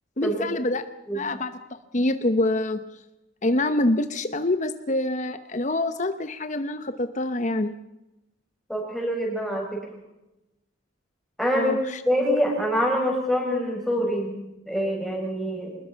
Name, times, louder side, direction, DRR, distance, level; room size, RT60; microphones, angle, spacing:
voice 1, 0.2-0.8 1.1-1.5 1.9-2.8 3.4-7.7 11.5-12.0, left 1 dB, 40° left, 10 dB, 0.9 m, -25 dB
voice 2, 8.7-9.8 11.4-11.7 12.1-14.4 14.7-15.8, equal, ahead, -1 dB, 7.2 m, -25 dB
26.0 x 20.5 x 5.8 m, 0.94 s
head